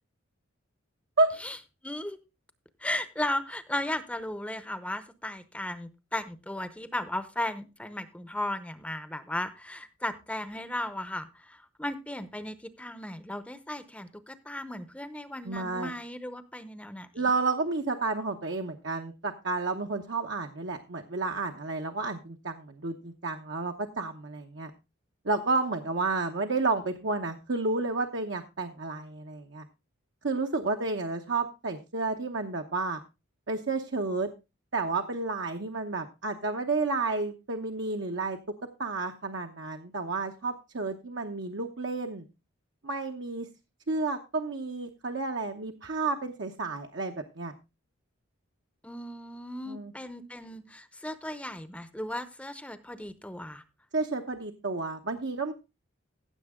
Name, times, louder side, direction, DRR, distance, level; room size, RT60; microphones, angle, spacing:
voice 1, 1.8-2.2 2.8-17.3 48.8-53.6, left 1 dB, 5° left, 12 dB, 0.7 m, -36 dB
voice 2, 15.4-15.9 17.1-24.7 25.2-29.6 30.2-33.0 33.5-34.3 34.7-38.4 38.8-42.3 42.8-43.5 43.9-47.5 49.7-49.9 53.9-55.5, right 3 dB, 60° right, 3 dB, 0.9 m, -31 dB
15.5 x 7.4 x 3.7 m, 0.27 s
head